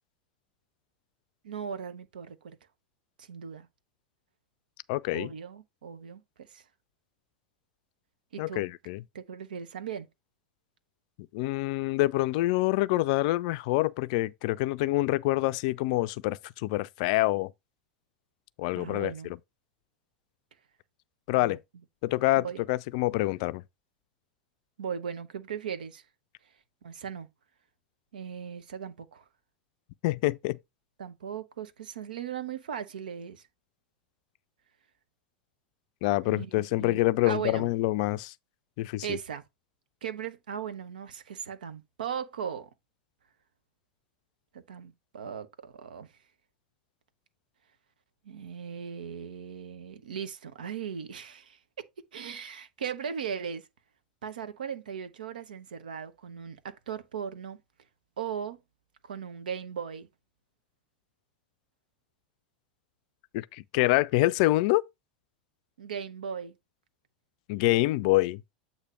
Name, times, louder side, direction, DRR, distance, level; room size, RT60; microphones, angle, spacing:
voice 1, 1.4-2.6 3.2-3.7 5.1-6.6 8.3-8.7 9.1-10.1 18.7-19.3 21.3-21.6 22.3-22.6 24.8-26.0 26.8-27.3 28.1-29.2 31.0-33.4 36.2-37.7 39.0-39.4 40.0-42.7 44.5-46.1 48.2-51.6 52.1-53.7 54.2-57.6 58.2-58.6 59.0-60.1 65.8-66.5, right 7 dB, 70° right, 0.8 m, -38 dB
voice 2, 4.9-5.3 8.4-9.0 11.3-17.5 18.6-19.1 21.3-21.6 22.0-23.6 30.0-30.6 36.0-38.3 38.8-39.2 63.3-64.8 67.5-68.4, left 18 dB, 50° left, 0.4 m, -26 dB
8.1 x 2.8 x 5.8 m
figure-of-eight pair, 90°, 5 cm